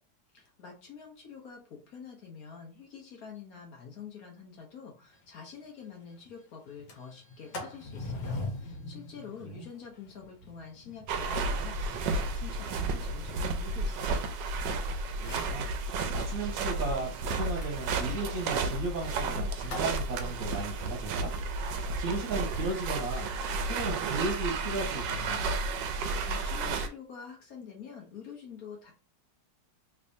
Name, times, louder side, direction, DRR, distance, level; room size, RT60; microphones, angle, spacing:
voice 1, 0.3-14.3 26.0-28.9, left 6 dB, 60° left, 1 dB, 1.2 m, -47 dB
Sliding door, 5.1-5.2 5.6-5.7 6.0-6.3 6.7-14.7 15.1-15.6 17.6-20.0, left 2 dB, 80° left, 1.6 m, -43 dB
sound 1, 11.1-26.9, right 3 dB, 80° right, 1.2 m, -32 dB
voice 2, 15.2-15.9 16.1-25.5, right 3 dB, 55° right, 1 dB, 1.3 m, -36 dB
3.3 x 3.2 x 2.6 m, 0.37 s
omnidirectional pair, 1.9 m